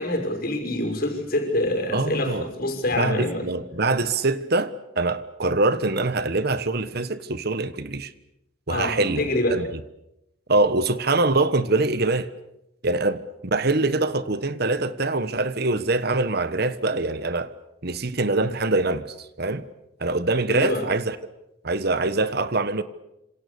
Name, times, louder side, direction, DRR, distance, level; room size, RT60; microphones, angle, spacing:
voice 1, 0.0-3.5 8.7-9.6 20.5-20.9, left 1 dB, 50° left, 6.1 m, -26 dB
voice 2, 1.9-2.5 3.0-8.1 8.7-9.2 9.5-9.7 10.5-12.3 12.8-17.5 17.8-19.6 20.0-21.2 21.6-22.8, right 2 dB, 55° right, 1.3 m, -24 dB
27.0 x 26.5 x 7.0 m
head